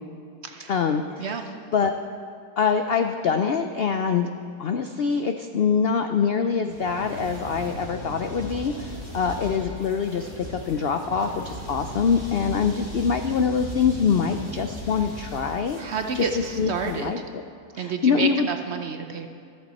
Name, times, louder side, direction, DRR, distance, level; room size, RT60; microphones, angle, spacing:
voice 1, 0.7-1.4 1.7-1.9 2.6-4.3 4.6-16.2 16.6-17.2 17.8-18.5, left 6 dB, 70° left, 7 dB, 0.5 m, -24 dB
sound 1, 6.7-17.0, equal, 25° left, 4.1 m, -38 dB
voice 2, 15.8-17.1 17.8-19.3, right 5 dB, 55° right, 6 dB, 0.8 m, -30 dB
14.5 x 13.5 x 4.2 m, 2.4 s
omnidirectional pair, 1.7 m